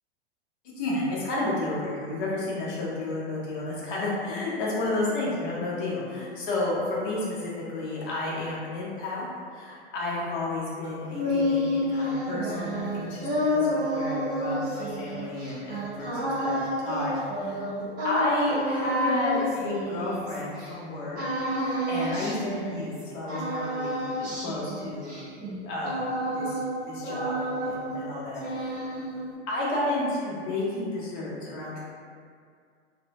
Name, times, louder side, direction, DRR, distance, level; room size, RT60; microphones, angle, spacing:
voice 1, 0.8-9.3 9.5-17.6 18.0-21.2 21.6-25.2 25.6-26.6 26.9-28.8 29.5-31.8, left 2 dB, 50° left, -6 dB, 1.0 m, -31 dB
sound 1, 10.8-20.7 21.1-23.0 23.3-26.8 27.0-28.1 28.3-29.3, equal, 25° right, 0.9 m, -30 dB
2.5 x 2.1 x 2.9 m, 2.2 s
hypercardioid pair, 105°, 33 cm